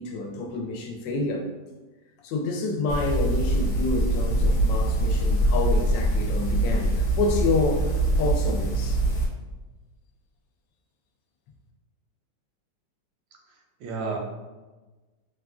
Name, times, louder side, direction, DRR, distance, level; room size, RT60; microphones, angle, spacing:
voice 1, 0.0-1.5 2.2-7.9 8.2-9.0, left 3 dB, 85° left, 1 dB, 1.3 m, -28 dB
sound 1, 2.9-9.3, right 1 dB, 70° left, 1.2 m, -23 dB
voice 2, 13.5-14.2, right 4 dB, 85° right, 1 dB, 1.3 m, -33 dB
3.5 x 2.3 x 2.4 m, 1.2 s
omnidirectional pair, 2.0 m